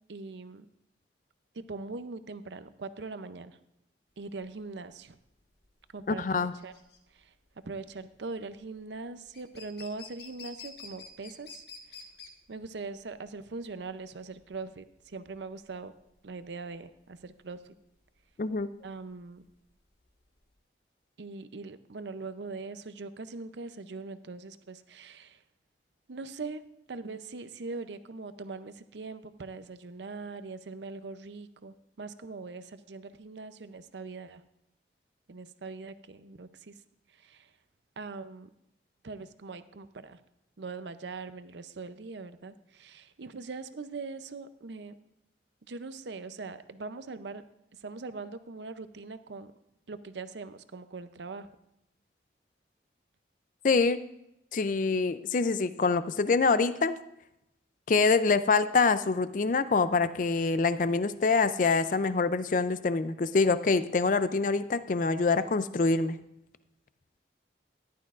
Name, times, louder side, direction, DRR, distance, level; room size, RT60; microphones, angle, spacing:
voice 1, 0.1-0.7 1.5-3.6 4.2-5.2 5.9-6.7 7.1-7.3 7.6-11.6 12.5-15.9 16.2-17.7 18.8-19.4 21.2-25.4 26.1-26.6 26.9-34.4 35.3-36.7 37.1-37.5 38.0-38.5 39.0-40.2 40.6-44.9 45.7-47.4 47.8-49.5 49.9-51.5, right 3 dB, 75° right, 12 dB, 0.6 m, -41 dB
sound 1, 4.2-20.5, left 5 dB, 65° left, 1.5 m, -51 dB
voice 2, 6.1-6.5 18.4-18.7 53.6-54.0 54.5-57.0 57.9-66.2, left 4 dB, 45° left, 13 dB, 0.4 m, -25 dB
14.0 x 11.5 x 2.5 m, 0.84 s
head